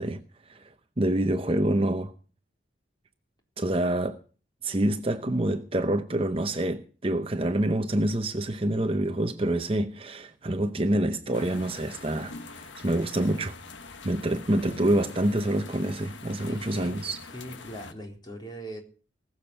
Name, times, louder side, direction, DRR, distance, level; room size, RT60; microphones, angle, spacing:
voice 1, 0.0-2.1 3.6-4.2 4.6-13.6 14.0-17.2, right 1 dB, 30° right, 0.7 m, -27 dB
sound 1, 11.3-17.9, left 3 dB, 80° left, 1.4 m, -44 dB
voice 2, 16.5-18.8, equal, 20° left, 3.7 m, -40 dB
19.5 x 7.2 x 7.6 m
head